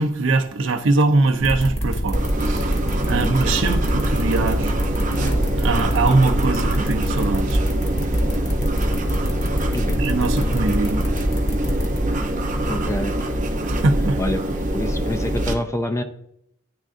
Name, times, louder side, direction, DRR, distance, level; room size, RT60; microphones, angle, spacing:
voice 1, 0.0-2.8 3.1-4.7 5.6-7.6 10.0-11.0 13.6-14.2, right 3 dB, 85° right, 0.6 m, -22 dB
sound 1, 1.4-12.0, equal, 35° left, 1.1 m, -25 dB
sound 2, 2.1-15.5, right 1 dB, 40° right, 0.6 m, -24 dB
Explosion, 5.1-15.0, equal, 65° left, 1.1 m, -40 dB
voice 2, 12.7-13.2 14.2-14.4 14.7-16.0, left 1 dB, 15° left, 0.4 m, -26 dB
10.0 x 3.7 x 2.5 m
head